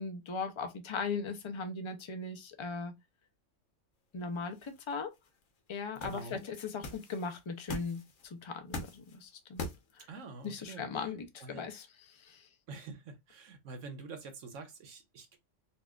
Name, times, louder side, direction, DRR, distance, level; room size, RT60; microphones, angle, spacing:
voice 1, 0.0-2.9 4.1-5.1 5.7-8.0 8.3-9.6 10.0-10.1 10.4-12.4, left 4 dB, 50° left, 0.3 m, -38 dB
sound 1, 4.2-10.5, left 2 dB, 85° left, 1.2 m, -44 dB
voice 2, 6.0-6.4 10.1-10.8 11.4-11.7 12.7-15.4, right 3 dB, 85° right, 1.2 m, -46 dB
4.2 x 2.4 x 2.3 m
omnidirectional pair, 1.3 m